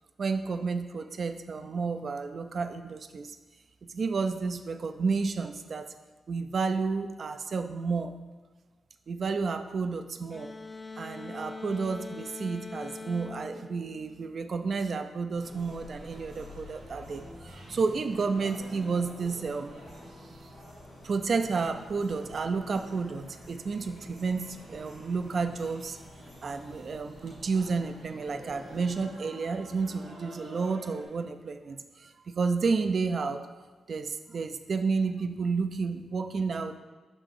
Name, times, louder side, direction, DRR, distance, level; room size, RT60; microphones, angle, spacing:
voice 1, 0.2-3.4 3.8-5.9 6.3-8.1 9.1-10.5 11.0-19.7 20.2-20.3 21.0-26.0 26.4-33.5 33.9-36.8, right 4 dB, 60° right, 8 dB, 0.4 m, -31 dB
sound 1, 10.3-14.8, left 3 dB, 30° left, 0.5 m, -43 dB
sound 2, 15.3-29.0, left 2 dB, 60° left, 1.4 m, -51 dB
sound 3, 15.4-31.0, right 1 dB, 85° right, 1.8 m, -49 dB
5.9 x 3.8 x 4.9 m, 1.4 s
cardioid pair, 60°, 0 cm